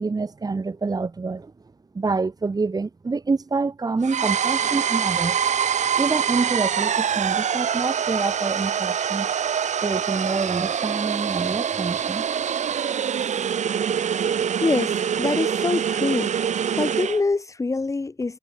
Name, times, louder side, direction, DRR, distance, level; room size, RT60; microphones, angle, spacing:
voice 1, 0.0-1.5 1.9-5.4 6.0-9.3 9.8-12.2, right 4 dB, 20° right, 7.4 m, -27 dB
sound 1, 4.0-17.2, right 8 dB, 45° right, 4.2 m, -25 dB
voice 2, 14.6-16.5 16.8-18.4, left 3 dB, 20° left, 4.7 m, -25 dB
cardioid pair, 110°, 17 cm